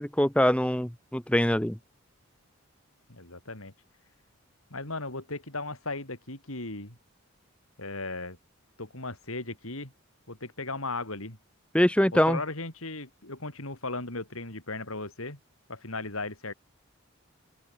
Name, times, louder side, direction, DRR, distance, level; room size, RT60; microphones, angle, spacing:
voice 1, 0.0-1.8 11.7-12.4, equal, 5° left, 1.2 m, -23 dB
voice 2, 3.1-3.7 4.7-7.0 7.8-8.4 8.8-9.9 10.3-11.4 12.1-15.4 15.7-16.5, left 2 dB, 80° left, 5.5 m, -36 dB
open air
head